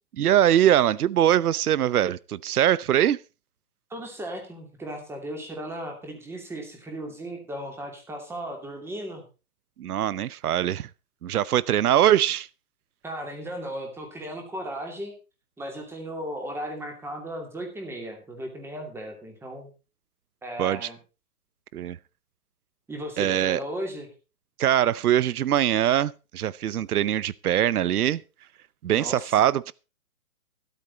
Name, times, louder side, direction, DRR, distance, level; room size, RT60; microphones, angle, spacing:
voice 1, 0.2-3.2 9.8-10.9 11.2-12.5 20.6-20.9 21.7-22.0 23.2-23.6 24.6-28.2 28.8-29.7, right 11 dB, 75° right, 0.8 m, -22 dB
voice 2, 3.9-9.2 13.0-15.1 15.6-19.7 20.4-21.0 22.9-24.1 28.9-29.3, right 1 dB, 5° right, 2.7 m, -36 dB
13.0 x 12.0 x 4.1 m
hypercardioid pair, 155°, 45 cm